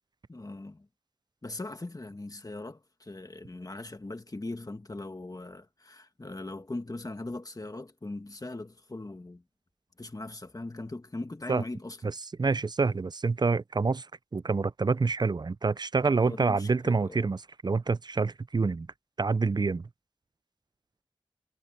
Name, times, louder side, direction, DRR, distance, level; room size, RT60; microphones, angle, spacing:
voice 1, 0.3-0.9 1.4-9.4 10.0-12.1 16.2-17.3, left 2 dB, 40° left, 1.7 m, -40 dB
voice 2, 12.4-14.0 14.3-17.4 17.6-18.9 19.2-19.8, right 4 dB, 50° right, 0.4 m, -27 dB
wide cardioid pair, 50°, 9 cm